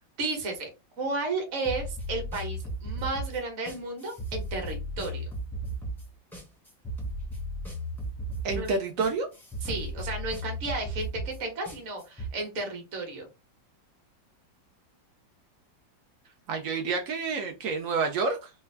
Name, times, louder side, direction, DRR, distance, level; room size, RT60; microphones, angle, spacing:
voice 1, 0.2-0.7 1.0-5.3 8.5-8.7 9.6-13.3, right 2 dB, 45° right, 2 dB, 1.3 m, -33 dB
sound 1, 1.6-12.3, right 1 dB, ahead, 0.6 m, -35 dB
voice 2, 8.4-9.3 16.5-18.5, right 4 dB, 85° right, 4 dB, 0.7 m, -28 dB
3.4 x 2.2 x 3.2 m, 0.27 s
omnidirectional pair, 2.0 m